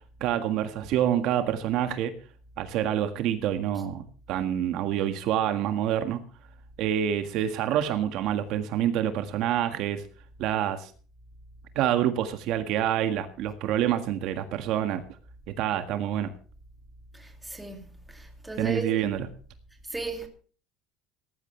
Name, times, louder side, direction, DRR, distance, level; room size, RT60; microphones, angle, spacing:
voice 1, 0.2-2.1 2.6-4.0 4.3-6.2 6.8-10.0 10.4-10.9 11.8-15.0 15.5-16.3 18.6-19.3, right 10 dB, 55° right, 1.7 m, -27 dB
voice 2, 17.1-18.9 19.9-20.3, right 2 dB, 5° right, 2.4 m, -36 dB
18.0 x 14.5 x 3.3 m
cardioid pair, 170°, 0 cm